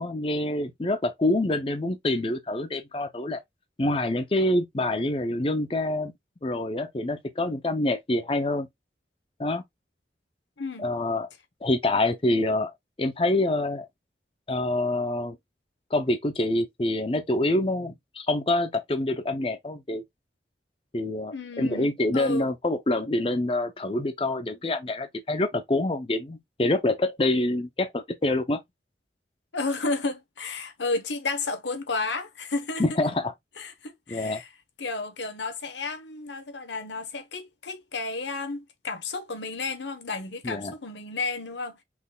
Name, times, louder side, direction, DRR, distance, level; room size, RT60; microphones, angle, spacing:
voice 1, 0.0-3.4 3.8-6.1 6.4-8.7 9.4-9.6 10.8-11.3 11.6-12.7 13.0-13.9 14.5-15.4 15.9-20.0 20.9-28.6 32.8-33.3 34.1-34.4 40.4-40.7, left 2 dB, 30° left, 0.6 m, -26 dB
voice 2, 10.6-10.9 21.3-22.5 29.5-32.8 33.6-34.5 34.8-41.8, left 3 dB, 90° left, 1.1 m, -32 dB
5.9 x 3.8 x 2.3 m
head